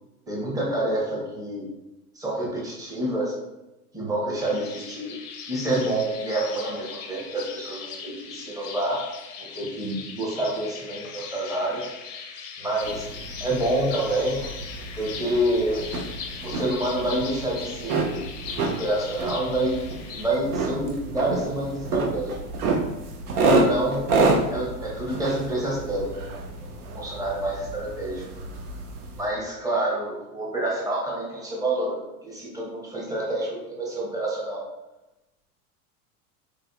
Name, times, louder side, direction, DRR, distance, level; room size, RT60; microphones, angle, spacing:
voice 1, 0.3-1.7 2.2-3.4 3.9-5.2 5.5-9.1 9.4-11.9 12.6-13.1 13.4-14.4 14.9-15.9 16.4-18.2 18.6-19.8 20.1-22.4 23.4-24.1 24.5-26.3 26.9-28.2 29.2-34.6, right 1 dB, 10° right, -4 dB, 0.8 m, -27 dB
sound 1, 4.4-20.3, left 6 dB, 35° left, 0.5 m, -39 dB
sound 2, 12.8-29.3, right 3 dB, 85° right, 0.6 m, -29 dB
3.9 x 2.5 x 2.3 m, 0.98 s
hypercardioid pair, 105°, 44 cm